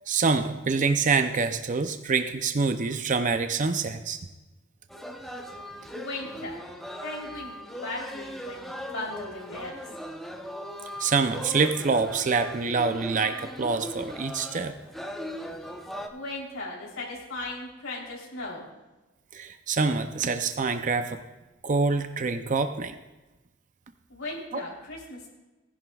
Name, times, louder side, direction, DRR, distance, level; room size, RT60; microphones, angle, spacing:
voice 1, 0.0-4.2 11.0-14.7 19.3-21.2 21.6-22.9 24.5-24.6, right 4 dB, 40° right, 8 dB, 0.6 m, -26 dB
sound 1, 4.9-16.1, equal, ahead, 0.7 m, -39 dB
voice 2, 5.9-6.6 7.0-9.8 16.1-18.7 24.1-25.3, left 2 dB, 85° left, -3 dB, 3.5 m, -37 dB
18.0 x 11.0 x 2.4 m, 1.1 s
head